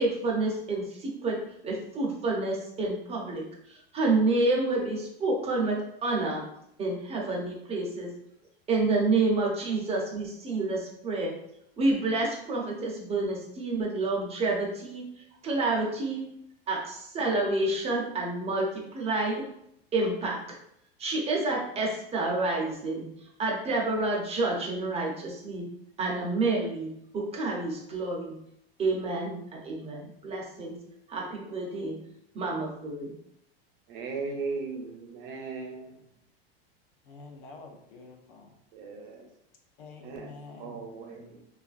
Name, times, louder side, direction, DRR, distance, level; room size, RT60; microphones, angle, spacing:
voice 1, 0.0-1.4 1.6-6.4 6.8-8.1 8.7-11.3 11.8-15.0 15.4-16.2 16.7-19.4 19.9-20.4 21.0-23.1 23.4-25.7 26.0-28.4 28.8-30.8 31.1-32.0 32.3-33.1, right 2 dB, 20° right, -1 dB, 0.6 m, -29 dB
voice 2, 33.9-35.9 38.7-39.3 40.0-40.3 40.6-41.4, right 4 dB, 60° right, 1 dB, 0.7 m, -37 dB
voice 3, 37.0-38.5 39.8-40.9, left 3 dB, 55° left, 2 dB, 0.6 m, -47 dB
2.9 x 2.4 x 2.4 m, 0.75 s
supercardioid pair, 130°, 29 cm